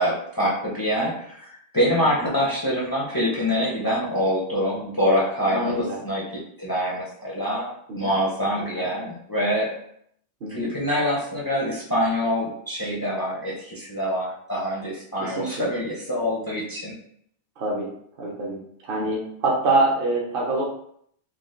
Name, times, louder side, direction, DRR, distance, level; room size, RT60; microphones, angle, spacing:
voice 1, 0.0-7.7 7.9-9.8 10.5-16.9, equal, 25° left, -5 dB, 0.5 m, -25 dB
voice 2, 5.5-6.0 7.9-8.1 8.8-8.9 10.4-10.7 15.2-15.7 17.6-17.9 18.2-20.6, right 2 dB, 55° right, -3 dB, 0.8 m, -25 dB
3.6 x 2.3 x 2.5 m, 0.68 s
omnidirectional pair, 1.1 m